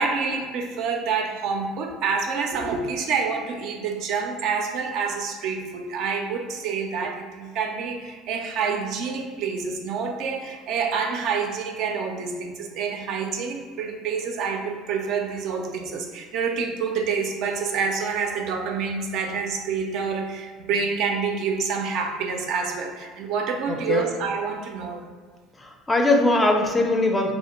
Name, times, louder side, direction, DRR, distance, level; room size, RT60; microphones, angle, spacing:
voice 1, 0.0-25.1, right 5 dB, 65° right, 3 dB, 0.3 m, -27 dB
voice 2, 23.7-24.0 25.6-27.3, left 2 dB, 20° left, 2 dB, 0.4 m, -21 dB
2.4 x 2.1 x 2.9 m, 1.5 s
hypercardioid pair, 75°, 0 cm